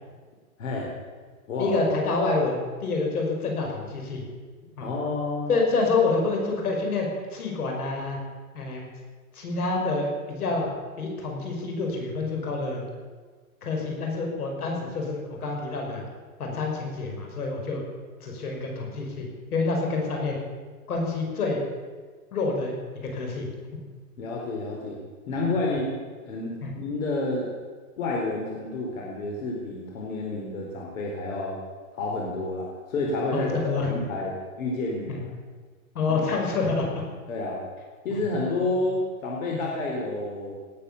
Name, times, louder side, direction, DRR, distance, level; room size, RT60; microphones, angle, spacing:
voice 1, 0.6-0.9 1.5-1.7 4.8-5.5 24.2-25.0 25.3-25.9 26.2-27.5 28.0-31.6 31.9-35.3 36.1-36.2 37.3-37.6 38.0-40.5, left 2 dB, 65° left, -2 dB, 4.3 m, -29 dB
voice 2, 1.6-4.2 4.8-4.9 5.5-8.2 8.5-8.8 9.3-10.7 11.0-12.8 13.6-16.0 16.4-17.8 18.2-20.4 20.9-21.6 22.3-22.7 23.0-23.5 25.3-25.4 26.6-26.7 33.3-33.9 35.1-35.2 35.9-37.0 38.1-38.2 39.5-39.6, left 3 dB, 85° left, 1 dB, 5.7 m, -27 dB
18.5 x 9.4 x 8.4 m, 1.5 s
hypercardioid pair, 155°, 44 cm